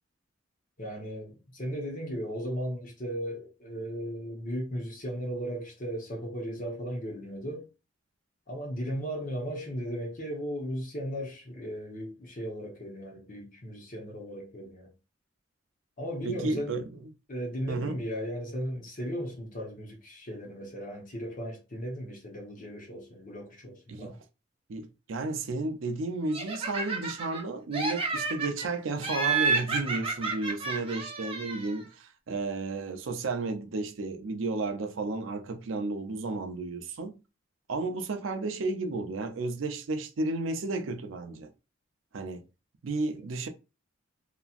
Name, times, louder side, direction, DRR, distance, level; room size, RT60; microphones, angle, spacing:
voice 1, 0.8-7.7 8.5-14.9 16.0-16.8 17.3-24.2, equal, 45° left, 1.0 m, -36 dB
voice 2, 16.2-17.1 17.7-18.0 23.9-24.1 24.7-37.1 37.7-41.5 42.1-42.4 42.8-43.5, right 3 dB, 80° right, 0.5 m, -33 dB
Laughter, 26.3-27.4 27.7-28.7 29.0-31.8, right 4 dB, 30° right, 0.8 m, -30 dB
2.9 x 2.4 x 2.4 m
head